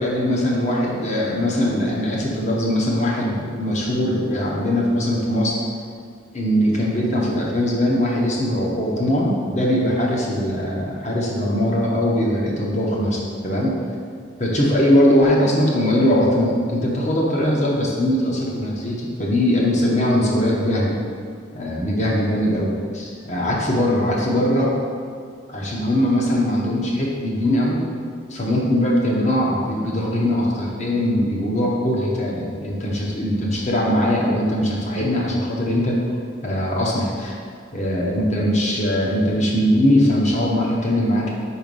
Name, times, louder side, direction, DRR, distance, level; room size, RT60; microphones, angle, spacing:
voice 1, 0.0-5.6 6.3-13.7 14.4-21.0 21.5-24.7 25.5-27.8 28.3-36.0 36.4-37.3 37.7-41.3, left 1 dB, 35° left, -3 dB, 1.1 m, -21 dB
5.0 x 4.7 x 5.4 m, 2.2 s
head